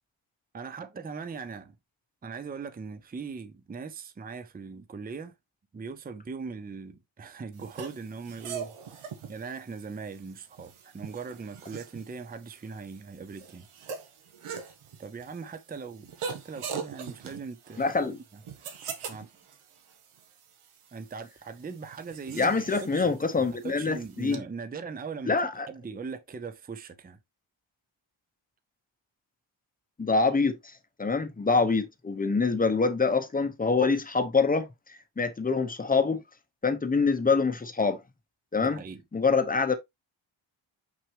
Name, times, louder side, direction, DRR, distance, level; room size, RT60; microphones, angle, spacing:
voice 1, 0.5-1.8 2.2-5.3 5.7-8.7 9.3-13.7 15.0-17.9 19.1-19.3 20.9-22.5 22.8-25.4 25.7-27.2 38.6-39.0, right 5 dB, 20° right, 0.6 m, -40 dB
sound 1, 7.6-24.4, right 6 dB, 85° right, 1.4 m, -42 dB
voice 2, 17.8-18.2 22.3-24.4 25.3-25.7 30.0-30.7 31.0-36.2 36.6-38.0 38.5-38.8 39.1-39.7, left 4 dB, 20° left, 0.8 m, -25 dB
6.1 x 5.9 x 3.1 m
wide cardioid pair, 175°, 49 cm